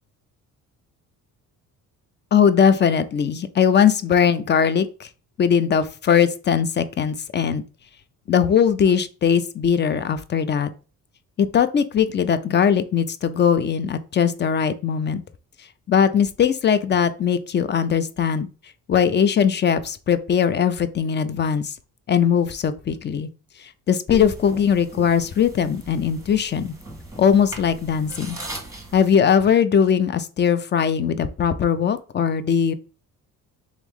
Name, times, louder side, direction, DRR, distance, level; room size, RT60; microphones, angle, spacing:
voice 1, 2.3-5.1 5.4-7.6 8.3-10.7 11.4-15.2 15.9-18.5 18.9-21.8 22.1-23.3 23.6-26.7 27.2-28.4 28.9-32.7, left 7 dB, 30° left, 0.4 m, -20 dB
sound 1, 24.1-29.1, right 2 dB, 10° right, 1.2 m, -38 dB
3.6 x 3.0 x 3.6 m
cardioid pair, 95°, 37 cm